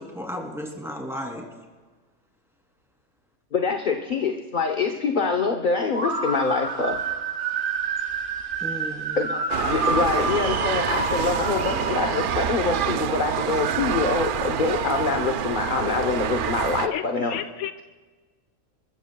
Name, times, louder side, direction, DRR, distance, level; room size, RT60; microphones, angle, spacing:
voice 1, 0.0-1.5 8.6-9.2, equal, ahead, 0 dB, 2.7 m, -34 dB
voice 2, 3.5-7.0 9.2-17.3, left 4 dB, 40° left, 3 dB, 0.9 m, -25 dB
sound 1, 5.9-12.4, right 3 dB, 40° right, 1.2 m, -28 dB
sound 2, 9.5-16.9, right 8 dB, 85° right, 0.4 m, -27 dB
voice 3, 16.9-17.8, left 10 dB, 80° left, 9 dB, 1.0 m, -32 dB
27.0 x 14.5 x 2.3 m, 1.3 s
omnidirectional pair, 1.5 m